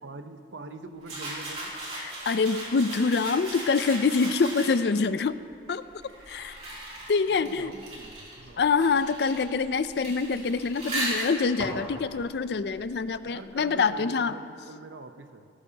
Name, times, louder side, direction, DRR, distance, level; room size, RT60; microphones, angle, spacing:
voice 1, 0.0-1.7 6.1-6.5 7.3-8.7 13.2-15.5, right 2 dB, 85° right, 8 dB, 0.8 m, -44 dB
sound 1, 1.0-5.0 5.8-13.2, right 1 dB, 35° right, 3.0 m, -37 dB
voice 2, 2.0-5.3 5.7-5.8 6.3-6.6 7.1-7.7 8.6-14.3, left 4 dB, 60° left, 13 dB, 0.4 m, -25 dB
17.5 x 14.5 x 2.9 m, 2.4 s
head